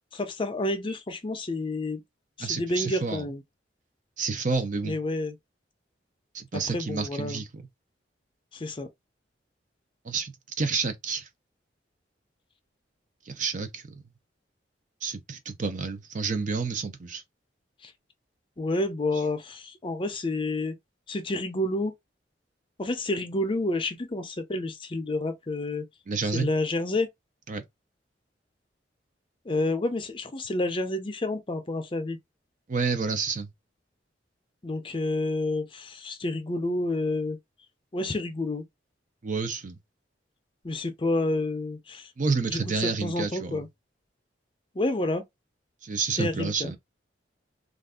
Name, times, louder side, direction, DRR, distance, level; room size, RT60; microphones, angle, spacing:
voice 1, 0.1-2.0 2.4-3.4 4.8-5.4 6.7-7.4 8.5-8.9 17.8-17.9 18.6-20.8 21.1-21.9 22.8-25.9 26.3-27.1 29.5-32.2 34.6-37.4 37.9-38.6 40.6-42.1 42.5-43.7 44.7-45.2 46.2-46.7, left 2 dB, 30° left, 0.5 m, -29 dB
voice 2, 2.4-3.2 4.2-5.0 6.3-7.6 10.0-10.3 10.6-11.3 13.3-13.8 15.0-17.2 26.1-26.5 27.5-27.6 32.7-33.5 39.2-39.8 42.2-43.6 45.8-46.8, right 4 dB, 45° right, 0.6 m, -29 dB
2.5 x 2.4 x 3.5 m
head